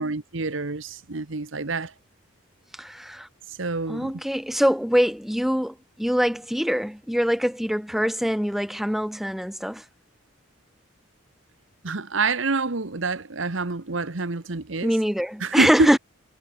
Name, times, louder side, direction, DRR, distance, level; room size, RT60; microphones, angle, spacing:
voice 1, 0.0-1.9 3.5-4.1 11.8-14.9 15.4-15.9, right 3 dB, 65° right, 1.2 m, -27 dB
voice 2, 2.7-3.3 3.9-9.8 14.8-16.0, equal, ahead, 0.9 m, -24 dB
head